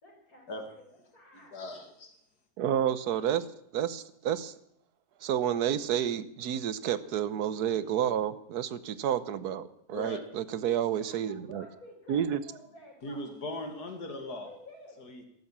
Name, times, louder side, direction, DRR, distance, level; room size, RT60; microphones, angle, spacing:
voice 1, 0.0-1.6 10.9-13.3 14.4-15.1, left 1 dB, 65° left, 0 dB, 5.9 m, -52 dB
voice 2, 1.3-2.1 9.9-10.2 13.0-14.5 15.0-15.3, left 1 dB, 90° left, 4 dB, 2.7 m, -39 dB
voice 3, 2.6-3.4 3.7-4.5 5.2-11.6 12.1-12.4, right 9 dB, 80° right, 15 dB, 1.4 m, -30 dB
14.0 x 12.5 x 7.3 m, 0.73 s
omnidirectional pair, 1.6 m